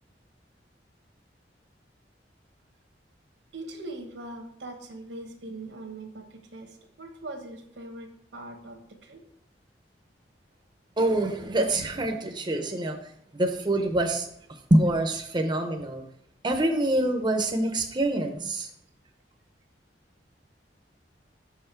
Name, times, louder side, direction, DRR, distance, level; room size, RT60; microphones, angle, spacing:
voice 1, 3.5-9.2, right 2 dB, 85° right, 5 dB, 1.2 m, -41 dB
voice 2, 11.0-13.1 13.3-14.3 14.7-16.0 16.4-18.7, right 1 dB, 25° right, 4 dB, 0.6 m, -25 dB
6.1 x 5.6 x 4.5 m, 0.70 s
head